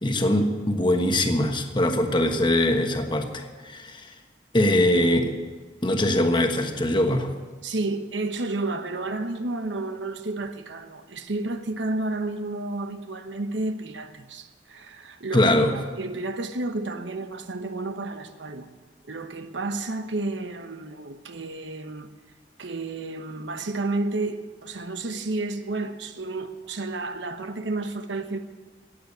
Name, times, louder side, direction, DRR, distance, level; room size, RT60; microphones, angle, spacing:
voice 1, 0.0-4.1 4.5-5.3 5.8-7.3 15.3-15.7, left 1 dB, 25° left, 1.3 m, -22 dB
voice 2, 7.6-18.7 19.1-22.1 22.6-28.4, right 2 dB, 80° right, 1.1 m, -31 dB
15.5 x 9.2 x 8.4 m
head